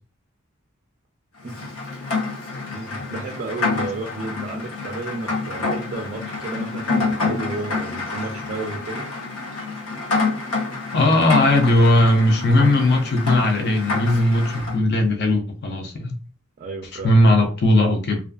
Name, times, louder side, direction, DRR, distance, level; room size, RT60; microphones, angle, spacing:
Rain, 1.5-14.8, left 3 dB, 85° left, 0.8 m, -27 dB
voice 1, 2.7-9.1 16.6-17.2, right 3 dB, 40° right, 0.4 m, -32 dB
voice 2, 10.9-16.1 16.9-18.2, left 1 dB, 50° left, 0.5 m, -18 dB
2.4 x 2.3 x 2.3 m
head